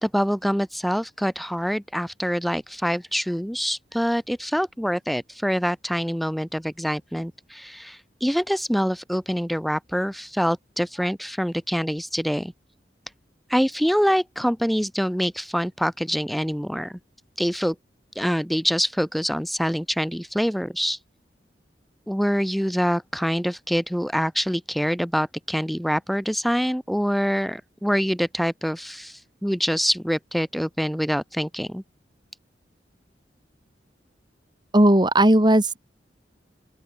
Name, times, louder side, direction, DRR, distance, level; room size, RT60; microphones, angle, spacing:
voice 1, 0.0-12.5 13.5-17.0 17.4-17.8 18.1-21.0 22.1-31.8, equal, ahead, 2.7 m, -25 dB
voice 2, 34.7-35.8, right 1 dB, 25° right, 3.1 m, -16 dB
open air
head